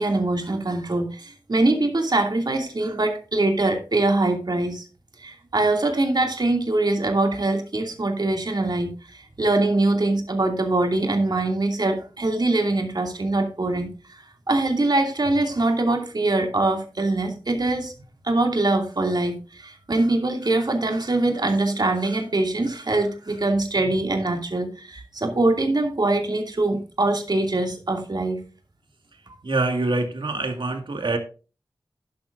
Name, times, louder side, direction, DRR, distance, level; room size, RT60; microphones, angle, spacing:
voice 1, 0.0-4.8 5.2-17.9 18.2-28.4, right 2 dB, 55° right, 3 dB, 2.6 m, -23 dB
voice 2, 29.4-31.2, right 2 dB, 80° right, 5 dB, 2.0 m, -25 dB
12.0 x 11.0 x 2.6 m, 0.34 s
wide cardioid pair, 65°, 8 cm